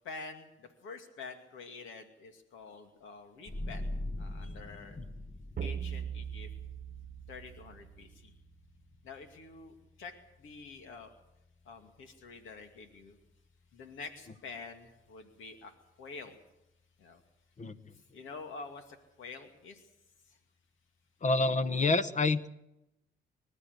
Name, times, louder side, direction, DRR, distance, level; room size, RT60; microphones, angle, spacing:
voice 1, 0.0-3.9 4.2-5.0 5.6-6.5 7.3-8.3 9.0-11.1 11.6-13.2 13.7-15.7 16.0-16.4 17.0-17.2 17.9-19.8 20.2-20.4, left 4 dB, 80° left, 5 dB, 2.4 m, -47 dB
sound 1, 3.5-14.7, left 1 dB, 15° left, 1.0 m, -45 dB
sound 2, 5.6-8.2, right 8 dB, 45° right, 1.1 m, -40 dB
voice 2, 21.2-22.5, left 3 dB, 35° left, 12 dB, 1.1 m, -27 dB
25.0 x 13.5 x 8.2 m, 0.89 s
cardioid pair, 90°, 20 cm